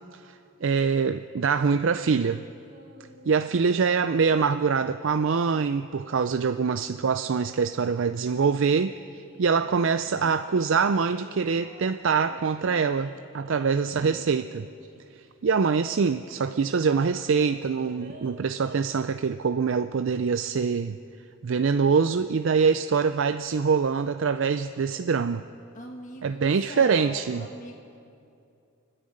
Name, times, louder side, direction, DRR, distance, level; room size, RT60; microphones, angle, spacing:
voice 1, 0.1-2.4 3.3-14.7 15.2-21.0 21.4-25.5 26.2-27.4, right 5 dB, 60° right, 10 dB, 0.4 m, -24 dB
sound 1, 1.8-9.6 10.1-15.0 15.3-15.4 15.6-18.9, right 1 dB, 40° right, 3.5 m, -50 dB
voice 2, 25.7-27.7, left 2 dB, 35° left, 1 dB, 1.4 m, -40 dB
30.0 x 10.0 x 8.6 m, 2.6 s
head